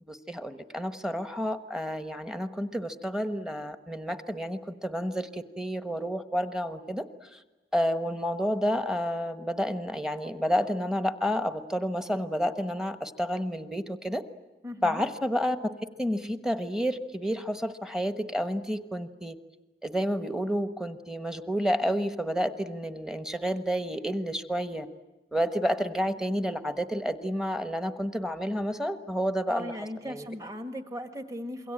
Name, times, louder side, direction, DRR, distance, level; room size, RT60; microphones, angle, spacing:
voice 1, 0.1-7.0 7.3-7.4 7.7-14.2 14.8-15.7 16.0-19.4 19.8-24.9 25.3-30.2, equal, 5° right, 10 dB, 1.2 m, -30 dB
voice 2, 14.6-15.0 29.5-31.7, equal, 20° right, 8 dB, 1.8 m, -37 dB
27.5 x 23.0 x 8.8 m, 1.1 s
head